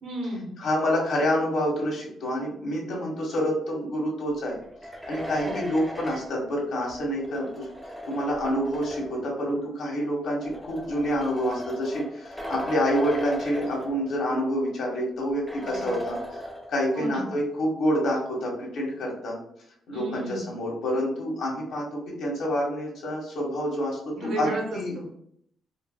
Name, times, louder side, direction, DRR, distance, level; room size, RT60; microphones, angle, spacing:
voice 1, 0.0-0.6 5.4-5.6 15.5-16.0 16.9-17.3 19.9-20.5 24.1-25.1, right 1 dB, 70° right, 0 dB, 1.2 m, -34 dB
voice 2, 0.6-4.6 5.1-7.7 8.1-16.4 16.7-19.4 19.9-24.9, equal, 70° left, -2 dB, 1.3 m, -27 dB
sound 1, 4.6-9.3 10.2-14.4 14.7-14.8 15.5-17.0, equal, ahead, 0.5 m, -38 dB
4.4 x 2.0 x 2.2 m, 0.69 s
cardioid pair, 90°, 0 cm